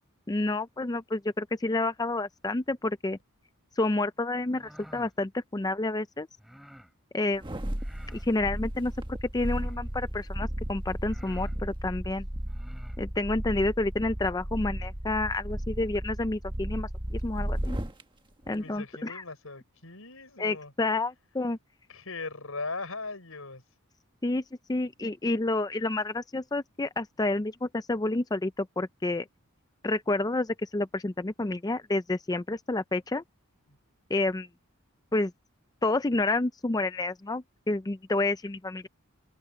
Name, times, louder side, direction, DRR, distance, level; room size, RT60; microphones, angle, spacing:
voice 1, 0.3-3.2 3.8-6.3 7.1-7.4 8.1-12.2 13.0-17.8 18.5-19.2 20.4-21.6 24.2-24.4 24.7-29.3 29.8-33.2 34.1-34.5 35.1-35.3 35.8-38.9, left 2 dB, 15° left, 0.5 m, -29 dB
sound 1, 4.4-5.1 6.4-6.9 7.7-8.3 9.3-9.9 10.6-10.7 11.0-11.6 12.4-13.0, equal, ahead, 3.1 m, -52 dB
sound 2, 7.3-18.0 18.4-18.6, equal, 20° right, 1.4 m, -34 dB
voice 2, 18.5-20.7 21.9-23.6 33.7-33.8, left 3 dB, 75° left, 5.9 m, -39 dB
head